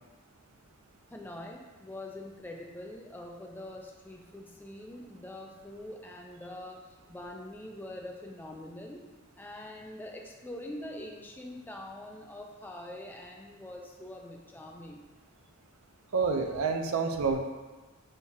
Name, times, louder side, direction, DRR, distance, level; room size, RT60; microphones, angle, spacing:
voice 1, 1.1-9.1 9.4-15.1, left 1 dB, 10° left, 0 dB, 0.3 m, -44 dB
voice 2, 16.1-17.4, right 5 dB, 75° right, 5 dB, 0.4 m, -28 dB
6.4 x 2.4 x 2.7 m, 1.2 s
head